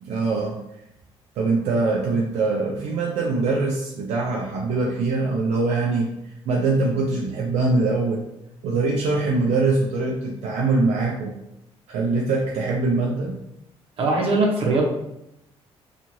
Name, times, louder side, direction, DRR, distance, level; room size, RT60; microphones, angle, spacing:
voice 1, 0.0-0.6 1.4-6.1 6.5-8.2 8.6-11.4 11.9-13.4, right 3 dB, 85° right, -2 dB, 0.4 m, -23 dB
voice 2, 14.0-14.8, right 2 dB, 60° right, -1 dB, 0.8 m, -20 dB
2.9 x 2.4 x 2.6 m, 0.85 s
cardioid pair, 120°, 11 cm